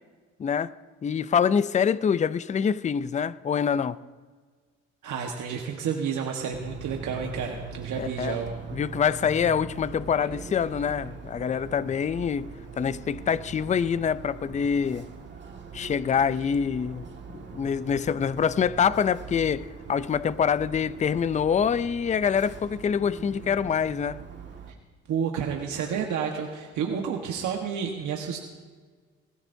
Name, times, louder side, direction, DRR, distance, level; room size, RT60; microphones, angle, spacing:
voice 1, 0.4-0.7 1.0-4.0 8.0-8.4 8.7-15.1 15.7-17.0 17.3-24.2, left 7 dB, 25° left, 0.4 m, -25 dB
voice 2, 5.0-8.5 24.7-24.8 25.1-28.4, right 7 dB, 75° right, 1.4 m, -30 dB
sound 1, 6.5-24.7, right 5 dB, 35° right, 1.8 m, -42 dB
21.0 x 14.5 x 2.7 m
cardioid pair, 90°, 30 cm